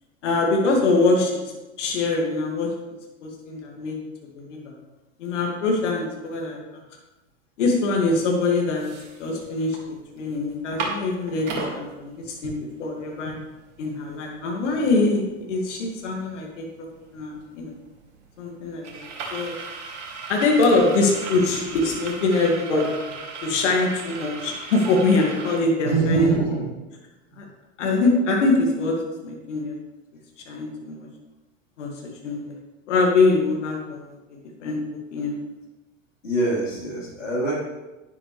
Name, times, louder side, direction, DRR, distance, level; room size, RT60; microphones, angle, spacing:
voice 1, 0.2-1.4 1.8-2.7 3.2-4.0 4.3-4.7 5.2-6.6 7.6-8.9 9.2-13.3 13.8-15.2 15.5-16.6 17.1-17.7 18.4-19.6 20.3-22.9 23.4-26.3 27.4-27.5 27.8-28.9 29.2-29.8 30.5-31.1 31.8-31.9 32.2-32.5 32.9-34.8 35.1-35.4, left 3 dB, 70° left, 0 dB, 2.3 m, -23 dB
sound 1, 8.1-8.2 8.6-9.8 10.2-10.3 10.5-11.7 12.3-12.4 12.7-25.6, right 4 dB, 65° right, 2.4 m, -36 dB
voice 2, 25.8-26.4 27.3-27.4 36.2-37.5, right 3 dB, 90° left, -6 dB, 4.1 m, -24 dB
11.5 x 10.0 x 3.3 m, 1.1 s
hypercardioid pair, 90°, 37 cm